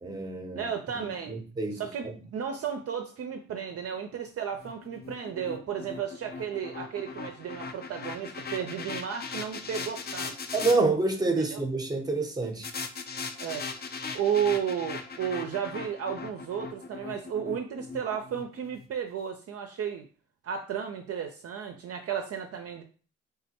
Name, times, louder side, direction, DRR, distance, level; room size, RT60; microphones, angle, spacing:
voice 1, 0.0-0.6 0.9-1.9 10.5-12.7, right 3 dB, 10° right, 0.8 m, -28 dB
voice 2, 0.6-1.4 1.7-10.4 11.5-11.6 13.4-13.7 14.1-20.1 20.4-22.8, right 8 dB, 50° right, 0.4 m, -33 dB
sound 1, 4.6-10.8 12.6-18.9, left 4 dB, 30° left, 0.4 m, -39 dB
3.4 x 2.1 x 2.8 m
supercardioid pair, 60°, 32 cm